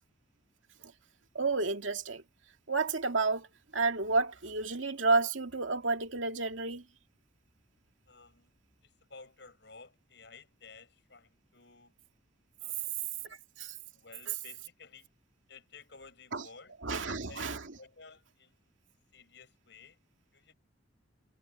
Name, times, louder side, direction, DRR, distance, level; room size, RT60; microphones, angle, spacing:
voice 1, 1.3-2.2 2.7-3.5 3.7-6.8 13.6-13.7 16.3-16.4 16.8-17.6, right 3 dB, 80° right, 2.3 m, -30 dB
voice 2, 8.1-8.5 8.8-11.9 12.6-13.0 13.9-15.1 15.5-16.8 17.1-18.7 19.1-20.0 20.3-20.5, left 4 dB, 65° left, 6.1 m, -54 dB
head